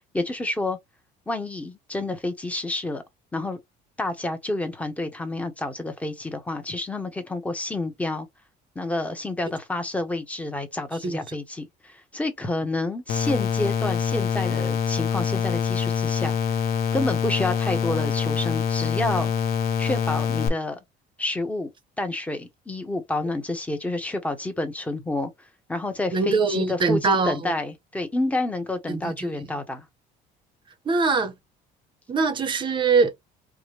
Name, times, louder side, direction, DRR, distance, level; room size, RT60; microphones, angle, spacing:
voice 1, 0.1-0.8 1.3-3.0 3.3-3.6 4.0-8.3 8.7-16.4 16.9-19.3 19.8-20.8 21.2-21.7 22.0-25.3 25.7-29.8, left 2 dB, 10° left, 0.9 m, -29 dB
sound 1, 13.1-20.5, left 7 dB, 55° left, 0.8 m, -25 dB
voice 2, 26.1-27.5 28.9-29.4 30.8-31.3 32.1-33.1, right 4 dB, 25° right, 0.7 m, -23 dB
4.7 x 2.2 x 3.1 m
cardioid pair, 155°, 18 cm